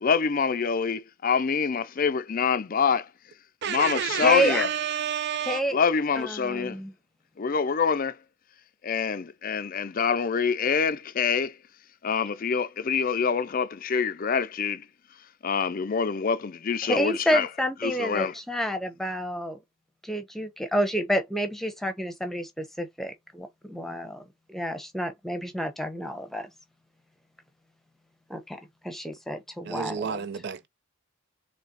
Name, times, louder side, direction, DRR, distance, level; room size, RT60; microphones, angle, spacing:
voice 1, 0.0-3.1 3.7-4.7 5.7-6.8 7.4-8.2 8.8-11.6 12.0-14.8 15.4-17.5 17.8-18.4, left 6 dB, 40° left, 0.4 m, -26 dB
voice 2, 3.6-5.6 29.7-30.7, right 8 dB, 55° right, 0.5 m, -30 dB
voice 3, 4.2-4.7 5.5-5.8 6.2-6.9 16.8-19.6 20.0-24.2 24.5-26.5 28.3-28.6 28.8-30.3, equal, ahead, 0.9 m, -29 dB
4.1 x 3.3 x 4.0 m
head